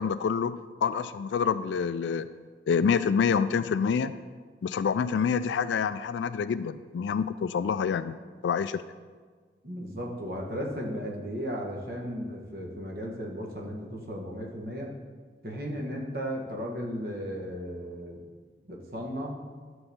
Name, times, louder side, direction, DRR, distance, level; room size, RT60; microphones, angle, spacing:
voice 1, 0.0-2.3 2.7-4.1 4.6-8.2 8.4-8.8, left 6 dB, 90° left, 12 dB, 0.3 m, -27 dB
voice 2, 9.6-14.9 15.4-18.2 18.7-19.4, equal, 55° right, -1 dB, 1.5 m, -35 dB
11.5 x 3.9 x 7.0 m, 1.5 s
head